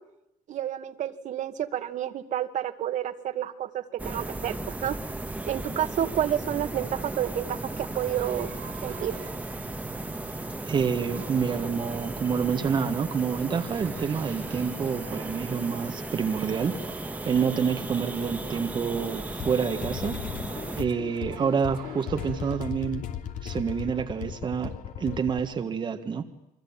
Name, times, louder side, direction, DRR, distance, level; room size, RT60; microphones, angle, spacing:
voice 1, 0.5-5.0 5.5-8.5 8.8-9.2, right 10 dB, 55° right, 8 dB, 2.1 m, -30 dB
sound 1, 4.0-20.9, right 2 dB, 10° right, 1.6 m, -36 dB
sound 2, 6.8-22.6, right 11 dB, 85° right, 3.8 m, -49 dB
voice 2, 10.6-16.8 17.2-20.2 20.8-23.0 23.4-26.2, right 6 dB, 30° right, 6 dB, 1.7 m, -28 dB
sound 3, 19.3-25.4, left 9 dB, 60° left, 2.9 m, -37 dB
28.5 x 23.5 x 8.9 m, 0.88 s
cardioid pair, 140°, 15 cm